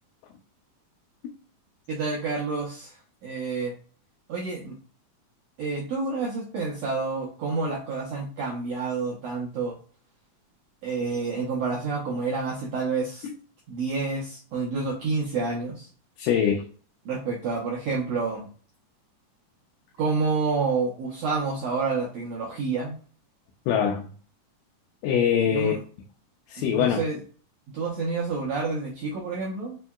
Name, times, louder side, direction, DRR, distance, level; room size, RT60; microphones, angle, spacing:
voice 1, 1.9-3.0 3.2-3.7 4.3-4.7 5.6-9.7 10.8-13.3 13.7-15.9 17.0-18.5 20.0-23.0 25.5-25.8 26.6-27.2 27.7-29.8, right 4 dB, 75° right, -4 dB, 1.6 m, -28 dB
voice 2, 16.2-16.6 23.7-24.1 25.0-25.7 26.5-27.0, left 8 dB, 90° left, 1 dB, 2.2 m, -23 dB
5.3 x 2.7 x 2.3 m, 0.41 s
omnidirectional pair, 3.8 m